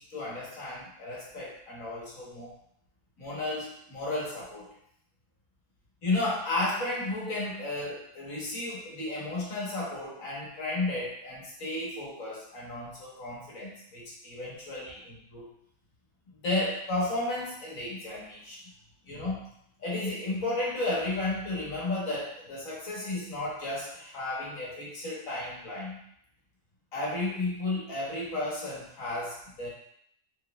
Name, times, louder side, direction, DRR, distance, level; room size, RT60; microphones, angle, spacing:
voice 1, 0.0-2.5 3.2-4.7 6.0-15.4 16.4-18.6 19.1-19.4 19.8-26.0 26.9-29.7, left 2 dB, 90° left, -5 dB, 1.7 m, -33 dB
4.6 x 3.7 x 2.3 m, 0.69 s
omnidirectional pair, 1.4 m